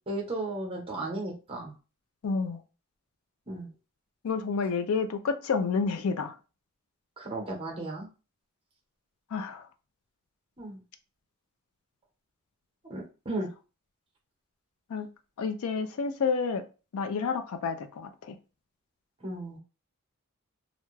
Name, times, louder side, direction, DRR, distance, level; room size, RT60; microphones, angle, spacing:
voice 1, 0.1-1.8 3.5-3.7 7.2-8.1 10.6-10.8 12.9-13.5 19.2-19.6, right 2 dB, 25° right, 0 dB, 0.8 m, -35 dB
voice 2, 2.2-2.6 4.2-6.3 9.3-9.7 13.3-13.4 14.9-15.1 15.4-16.6 16.9-18.4, left 5 dB, 75° left, 8 dB, 0.4 m, -29 dB
2.5 x 2.2 x 3.1 m, 0.33 s
head